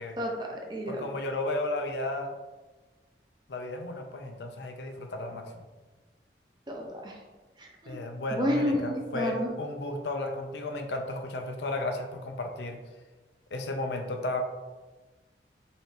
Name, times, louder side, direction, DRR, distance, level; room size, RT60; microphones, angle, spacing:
voice 1, 0.2-1.0 6.7-7.1 7.6-8.0 8.3-9.5, left 1 dB, 25° right, 0 dB, 0.7 m, -31 dB
voice 2, 0.9-2.3 3.5-5.6 7.9-12.8 13.5-14.4, left 2 dB, 75° left, 4 dB, 0.6 m, -34 dB
5.6 x 2.9 x 3.3 m, 1.2 s
head